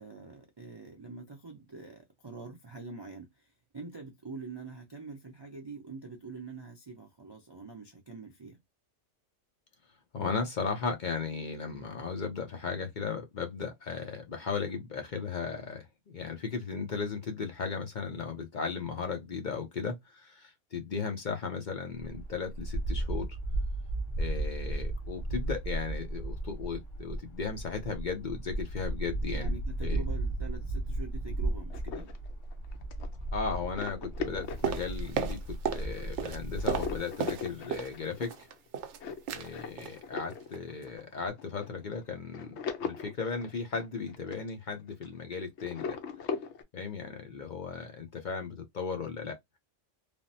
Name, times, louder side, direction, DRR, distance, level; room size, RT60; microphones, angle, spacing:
voice 1, 0.0-3.3 3.7-8.6 29.3-32.1, right 3 dB, 40° right, 0.3 m, -44 dB
voice 2, 10.1-23.3 24.2-29.6 29.8-30.0 33.3-38.3 39.3-42.6 42.8-46.0 46.7-49.6, left 5 dB, 50° left, 0.6 m, -36 dB
sound 1, 21.9-37.0, right 2 dB, 85° left, 1.2 m, -35 dB
sound 2, 31.7-35.5 36.0-36.3 36.6-45.2 45.6-46.6, left 5 dB, 70° left, 0.9 m, -39 dB
sound 3, 34.6-35.9 36.1-37.9 38.2-39.0 39.3-39.5 39.8-40.0 40.3-40.6 40.8-40.9, right 7 dB, 75° right, 0.9 m, -34 dB
3.3 x 2.0 x 2.6 m
omnidirectional pair, 1.3 m